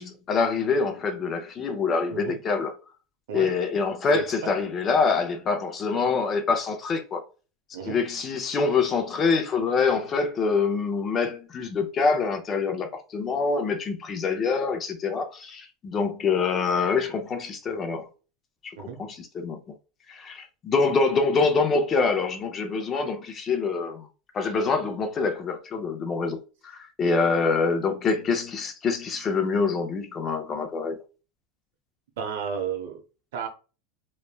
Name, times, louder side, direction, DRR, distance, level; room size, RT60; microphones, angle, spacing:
voice 1, 0.0-2.7 3.3-7.2 7.9-18.1 18.6-19.6 20.1-24.1 24.3-31.0, left 4 dB, 20° left, 0.4 m, -25 dB
voice 2, 32.2-33.0 33.3-33.5, right 7 dB, 85° right, 0.8 m, -32 dB
3.0 x 2.2 x 2.3 m
supercardioid pair, 170°, 0 cm